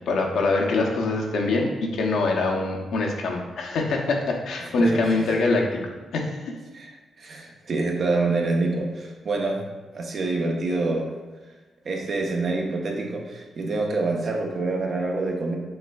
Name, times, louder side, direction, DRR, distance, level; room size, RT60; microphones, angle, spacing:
voice 1, 0.1-5.8 6.1-6.5, left 2 dB, 80° left, 0 dB, 0.6 m, -24 dB
voice 2, 4.6-5.3 6.7-9.6 9.9-11.1 11.8-15.6, right 3 dB, 55° right, 1 dB, 0.7 m, -27 dB
5.4 x 3.3 x 2.3 m, 1.3 s
cardioid pair, 75°, 0 cm